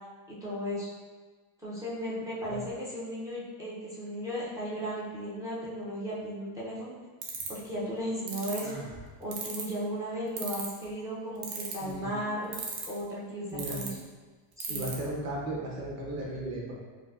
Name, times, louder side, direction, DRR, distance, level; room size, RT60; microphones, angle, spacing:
voice 1, 0.3-0.9 1.6-7.0 7.5-8.8 9.2-12.5 12.9-14.0 14.6-14.8, equal, 10° right, -8 dB, 0.3 m, -35 dB
sound 1, 7.2-7.6 8.3-8.6 9.3-9.7 10.4-10.8 11.4-11.9 12.5-13.0 13.6-13.9 14.6-14.9, right 8 dB, 85° right, 0.8 m, -35 dB
Sigh, 8.6-9.1, right 2 dB, 65° right, 1.4 m, -43 dB
voice 2, 13.5-13.8 14.7-16.7, right 1 dB, 35° right, -4 dB, 0.8 m, -35 dB
4.8 x 2.1 x 2.3 m, 1.4 s
cardioid pair, 150°, 46 cm